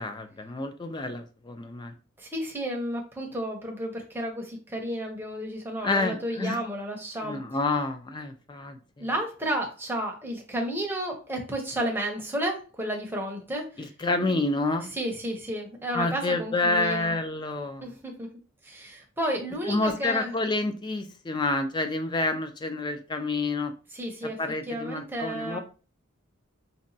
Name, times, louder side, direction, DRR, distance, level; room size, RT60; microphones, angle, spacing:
voice 1, 0.0-1.9 5.8-6.6 7.2-9.1 13.8-14.9 15.9-17.9 19.7-23.7 24.4-25.6, left 2 dB, 20° left, 7 dB, 0.3 m, -28 dB
voice 2, 2.2-7.4 9.0-13.9 14.9-17.1 17.8-18.3 18.6-20.3 23.9-24.4 24.7-25.6, right 1 dB, 10° right, 1 dB, 0.7 m, -32 dB
4.0 x 2.2 x 2.6 m, 0.35 s
head